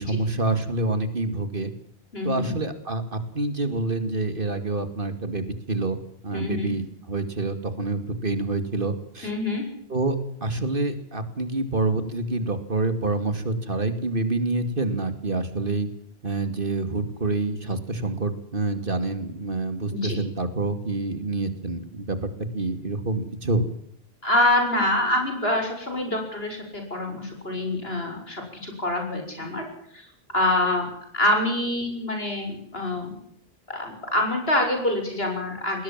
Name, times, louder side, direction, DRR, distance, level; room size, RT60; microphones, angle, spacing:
voice 1, 0.0-1.7 2.2-6.0 6.2-9.3 9.9-15.9 16.2-23.6, right 2 dB, 60° right, 9 dB, 2.7 m, -27 dB
voice 2, 2.1-2.5 6.3-6.7 9.2-9.7 19.9-20.2 24.2-29.6 29.9-30.0 30.3-30.9 31.1-33.1 33.7-35.8, left 1 dB, 75° left, 4 dB, 7.3 m, -25 dB
21.0 x 18.0 x 7.5 m, 0.69 s
omnidirectional pair, 1.0 m